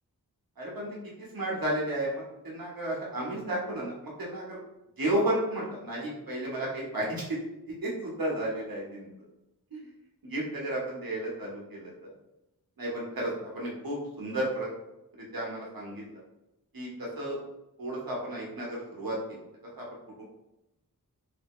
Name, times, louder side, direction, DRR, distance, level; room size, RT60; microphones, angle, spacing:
voice 1, 0.6-4.6 5.0-7.4 7.7-9.1 9.7-9.9 10.2-12.1 12.8-14.7 15.1-16.2 16.7-17.4 17.8-19.4 19.8-19.9 20.2-20.3, right 1 dB, 70° right, -4 dB, 1.2 m, -33 dB
3.4 x 2.7 x 3.0 m, 0.93 s
wide cardioid pair, 80°, 37 cm